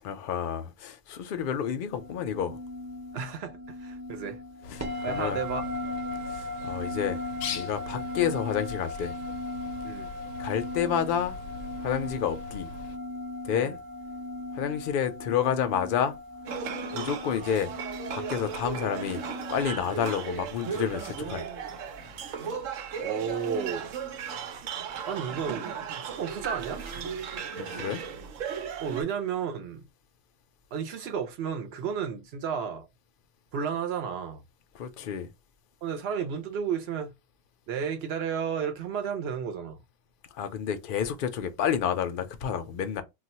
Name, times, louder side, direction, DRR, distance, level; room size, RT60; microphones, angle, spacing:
voice 1, 0.0-2.6 5.0-5.4 6.3-7.2 7.5-9.1 10.4-11.4 11.8-12.7 13.4-13.8 14.5-16.2 16.9-17.7 18.1-19.2 19.5-21.5 27.6-28.0 34.7-35.3 40.3-43.0, left 8 dB, 65° left, 0.5 m, -29 dB
sound 1, 2.0-20.0, left 2 dB, 25° right, 0.3 m, -37 dB
voice 2, 3.1-3.5 3.8-4.4 5.0-5.6 9.8-10.1 13.5-13.8 23.0-23.9 25.0-26.8 28.8-29.9 30.7-32.9 33.5-34.4 35.8-37.1 37.7-39.8, right 7 dB, 60° right, 0.8 m, -32 dB
Bird, 4.6-13.0, left 5 dB, 85° left, 1.0 m, -42 dB
sound 2, 16.5-29.0, right 7 dB, 90° right, 1.0 m, -36 dB
2.4 x 2.2 x 4.0 m
omnidirectional pair, 1.3 m